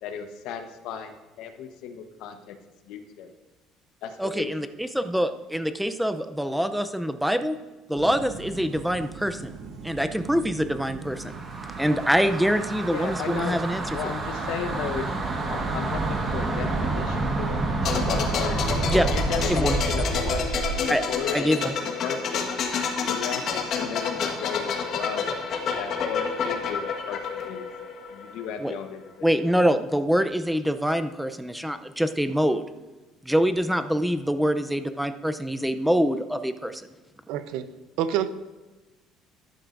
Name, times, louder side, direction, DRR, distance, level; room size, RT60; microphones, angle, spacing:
voice 1, 0.0-2.6 2.9-3.3 4.0-4.7 12.9-13.6 13.9-15.1 15.5-17.6 18.0-21.6 22.0-22.5 23.1-25.3 25.8-27.7 28.1-29.8, left 7 dB, 75° left, 6 dB, 1.1 m, -35 dB
voice 2, 4.2-7.6 7.9-9.5 9.8-11.3 11.8-13.8 18.9-19.1 19.5-19.8 20.9-21.0 21.3-21.7 28.6-28.7 29.2-32.6 33.2-36.9, equal, ahead, 9 dB, 0.5 m, -25 dB
sound 1, 8.0-18.1, right 5 dB, 55° right, 1.0 m, -41 dB
sound 2, 11.1-20.9, right 2 dB, 30° right, 1.4 m, -29 dB
sound 3, 17.8-28.5 28.7-28.9, left 6 dB, 50° left, 1.5 m, -29 dB
voice 3, 37.3-37.7 38.0-38.3, right 10 dB, 80° right, 12 dB, 0.7 m, -26 dB
13.0 x 11.0 x 2.6 m, 1.2 s
cardioid pair, 140°, 0 cm